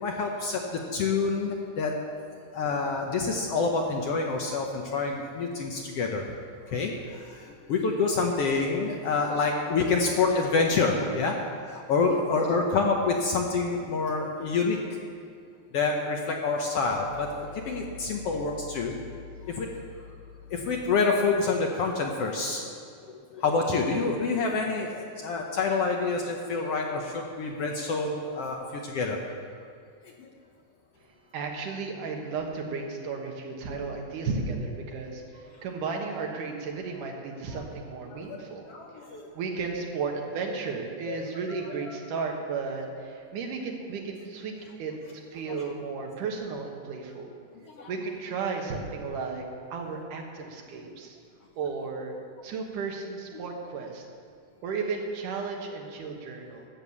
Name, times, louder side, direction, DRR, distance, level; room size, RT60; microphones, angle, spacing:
voice 1, 0.0-1.9 2.5-6.2 6.7-14.8 15.7-18.9 19.5-19.7 20.5-22.7 23.3-29.2 30.0-30.3 38.1-38.4 38.7-39.3 41.1-41.2 41.5-42.0 45.5-45.8 47.7-47.9, left 4 dB, 65° left, 1 dB, 1.6 m, -27 dB
voice 2, 31.3-38.7 39.3-44.5 44.8-47.3 47.9-51.2 51.6-52.1 52.4-54.1 54.6-56.7, right 4 dB, 85° right, 2 dB, 2.9 m, -34 dB
12.5 x 8.1 x 7.1 m, 2.3 s
omnidirectional pair, 3.6 m